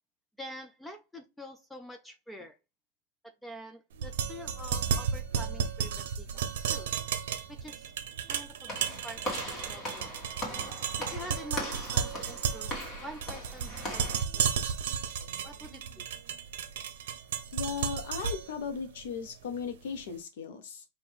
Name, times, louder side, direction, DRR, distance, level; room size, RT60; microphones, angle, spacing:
voice 1, 0.4-2.6 3.2-6.9 7.5-7.9 8.3-10.1 11.1-12.7 13.0-14.6 15.4-16.1, equal, 5° left, 0.3 m, -46 dB
sound 1, 3.9-20.0, right 7 dB, 70° right, 0.7 m, -34 dB
Walk footsteps / Slam, 8.7-14.2, equal, 20° left, 1.5 m, -39 dB
voice 2, 17.5-20.8, left 6 dB, 65° left, 1.0 m, -37 dB
5.0 x 2.5 x 3.5 m
supercardioid pair, 165°, 0 cm